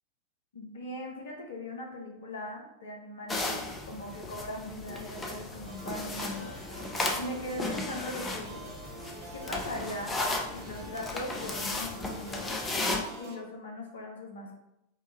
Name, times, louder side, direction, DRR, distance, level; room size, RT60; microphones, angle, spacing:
voice 1, 0.5-8.5 9.3-10.2 10.5-12.5 13.2-14.6, left 1 dB, 65° left, 1 dB, 0.7 m, -40 dB
sound 1, 3.3-13.0, left 2 dB, 15° left, 0.5 m, -35 dB
sound 2, 5.6-13.4, right 1 dB, 55° right, 1.4 m, -46 dB
4.5 x 2.3 x 2.7 m, 0.84 s
figure-of-eight pair, 90°, 0 cm